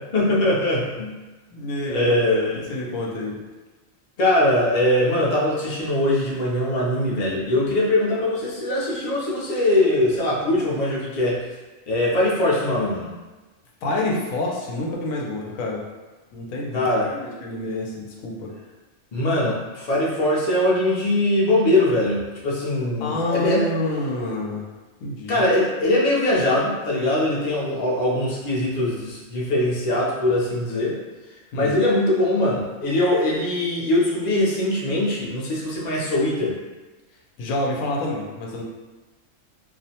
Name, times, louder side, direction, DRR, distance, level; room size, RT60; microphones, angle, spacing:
voice 1, 0.1-1.1 1.9-2.6 4.2-11.4 11.9-13.1 16.7-17.1 19.1-23.7 25.3-30.9 31.5-36.6, left 1 dB, 50° left, -5 dB, 0.5 m, -21 dB
voice 2, 1.5-3.4 13.8-15.8 16.3-16.8 17.1-18.5 23.0-24.6 25.0-25.4 31.5-31.7 37.4-38.6, left 1 dB, 90° left, -2 dB, 1.0 m, -28 dB
2.5 x 2.0 x 2.7 m, 1.2 s
omnidirectional pair, 1.4 m